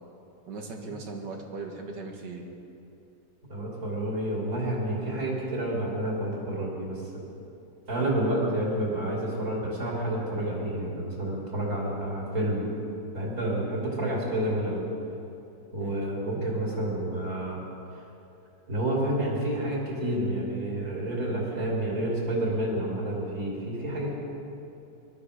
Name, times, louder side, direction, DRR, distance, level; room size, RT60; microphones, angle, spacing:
voice 1, 0.5-2.4 15.8-16.5, right 3 dB, 90° right, 1 dB, 2.3 m, -39 dB
voice 2, 3.5-7.0 7.9-12.7 13.1-14.8 15.7-17.6 18.7-24.2, right 1 dB, 55° right, -4 dB, 3.3 m, -29 dB
20.5 x 12.0 x 5.0 m, 2.8 s
omnidirectional pair, 1.8 m